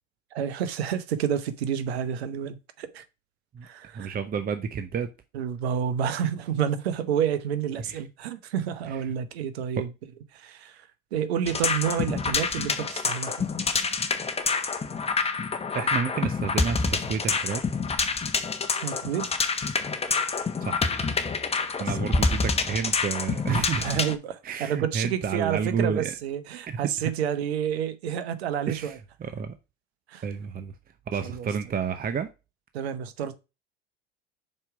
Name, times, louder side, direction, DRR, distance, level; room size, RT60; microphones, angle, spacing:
voice 1, 0.3-3.0 3.6-4.2 5.3-9.9 10.3-13.4 18.8-19.3 21.9-22.2 23.8-24.3 24.6-29.0 30.1-30.2 31.2-31.5 32.7-33.3, right 8 dB, 85° right, 0.9 m, -29 dB
voice 2, 3.9-5.1 7.9-8.0 8.9-9.1 15.7-17.6 20.6-20.9 21.8-24.0 24.4-26.1 26.7-27.1 28.7-28.9 29.2-29.5 30.2-30.7 31.1-32.3, right 6 dB, 30° right, 0.7 m, -30 dB
sound 1, 11.5-24.2, left 4 dB, 20° left, 1.0 m, -27 dB
5.5 x 4.5 x 4.7 m
hypercardioid pair, 75°, 31 cm